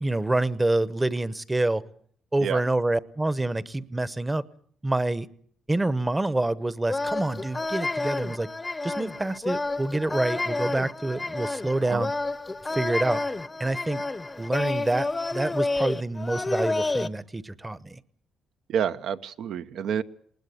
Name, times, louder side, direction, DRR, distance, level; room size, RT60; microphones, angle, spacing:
voice 1, 0.0-1.8 2.3-4.4 4.8-5.3 5.7-8.5 8.8-12.1 12.7-13.2 13.6-14.0 14.4-18.0, right 2 dB, 15° right, 16 dB, 0.9 m, -27 dB
sound 1, 6.9-17.1, left 2 dB, 20° left, 0.8 m, -30 dB
voice 2, 18.7-20.0, right 8 dB, 75° right, 10 dB, 1.0 m, -28 dB
20.0 x 19.5 x 8.4 m, 0.62 s
cardioid pair, 90°, 0 cm